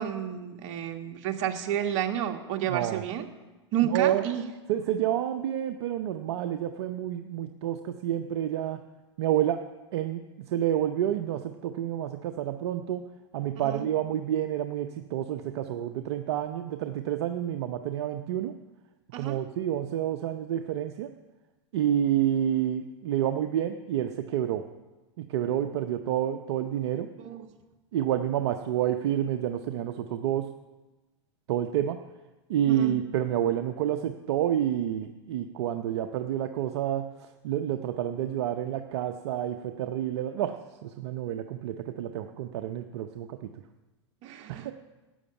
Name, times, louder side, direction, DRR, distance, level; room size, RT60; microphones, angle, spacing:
voice 1, 0.0-3.2 3.7-4.4 13.6-13.8 19.1-19.4 27.2-27.5 32.7-32.9 44.2-44.7, right 10 dB, 45° right, 4 dB, 1.6 m, -31 dB
voice 2, 2.7-3.0 3.8-4.2 4.7-8.8 9.2-9.6 9.9-13.0 13.3-18.5 19.2-21.1 21.7-24.7 25.2-27.1 27.9-30.5 31.5-32.0 32.5-40.6 40.8-43.5 44.5-44.7, right 11 dB, 65° right, 7 dB, 0.8 m, -29 dB
12.5 x 8.0 x 8.5 m, 1.2 s
hypercardioid pair, 105°, 15 cm